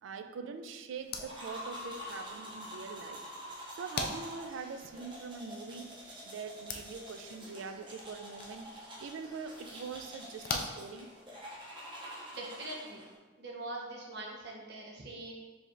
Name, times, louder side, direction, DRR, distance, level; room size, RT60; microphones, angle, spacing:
voice 1, 0.0-3.2 3.7-5.9 6.2-11.1, right 5 dB, 75° right, 9 dB, 0.3 m, -43 dB
sound 1, 0.9-11.6, left 4 dB, 50° left, 0.3 m, -45 dB
sound 2, 1.2-13.1, equal, 25° right, 0.6 m, -47 dB
voice 2, 12.3-13.0 13.4-15.3, right 2 dB, 55° right, -2 dB, 0.8 m, -42 dB
4.7 x 3.2 x 2.5 m, 1.3 s
head